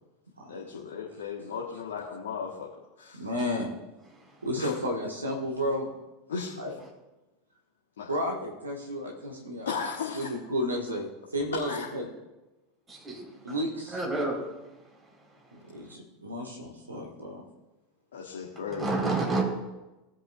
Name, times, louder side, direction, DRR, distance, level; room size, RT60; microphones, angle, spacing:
voice 1, 0.5-2.7 3.0-3.2 4.5-4.7 6.3-6.5 8.0-8.1 9.6-10.3 11.7-11.9 18.1-18.9, left 6 dB, 65° left, -3 dB, 1.4 m, -35 dB
voice 2, 3.2-3.7 4.4-5.9 6.6-6.7 8.1-9.7 10.1-12.1 13.4-14.0 15.7-17.4, equal, 80° right, -1 dB, 1.7 m, -32 dB
voice 3, 12.9-13.6 13.9-14.4 18.7-19.4, right 2 dB, 15° right, -2 dB, 4.3 m, -29 dB
18.5 x 8.6 x 2.5 m, 1.0 s
figure-of-eight pair, 80°, 0 cm